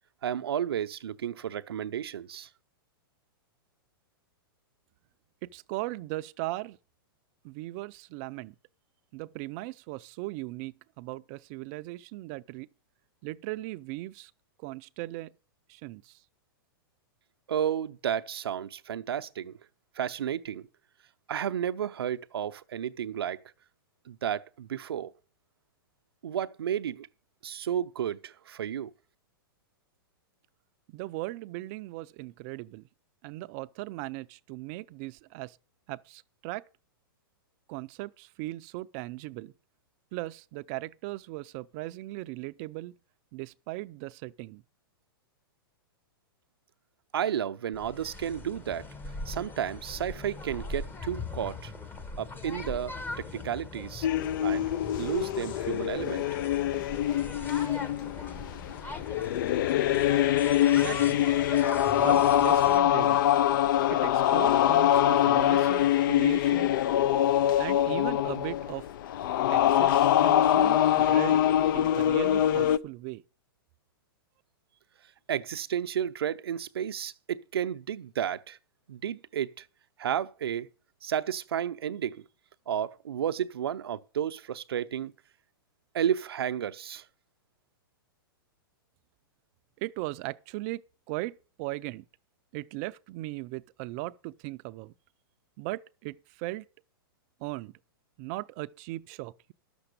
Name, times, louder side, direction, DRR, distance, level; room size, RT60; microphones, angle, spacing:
voice 1, 0.2-2.5 17.5-19.5 20.0-20.6 21.3-23.4 24.1-25.1 26.2-27.1 27.4-28.9 47.1-48.9 49.3-51.7 52.2-54.1 54.4-54.7 55.0-56.3 75.3-78.6 78.9-79.7 80.0-80.7 81.0-82.2 82.7-85.1 85.9-87.0, right 9 dB, 85° right, 0.6 m, -32 dB
voice 2, 5.4-6.8 7.4-8.5 9.1-12.7 13.2-14.3 14.6-15.3 15.7-16.2 30.9-32.9 33.2-35.6 35.9-36.6 37.7-39.5 40.1-42.9 43.3-44.6 60.6-61.3 62.0-63.2 63.9-66.7 67.6-68.9 69.5-71.4 71.7-73.2 89.8-90.8 91.1-92.0 92.5-94.9 95.6-96.6 97.4-97.7 98.2-99.5, right 19 dB, 40° right, 0.5 m, -38 dB
sound 1, 47.7-62.8, left 3 dB, 15° left, 1.0 m, -40 dB
sound 2, 54.0-72.8, left 11 dB, 60° left, 0.5 m, -24 dB
11.5 x 7.0 x 6.6 m
hypercardioid pair, 130°, 13 cm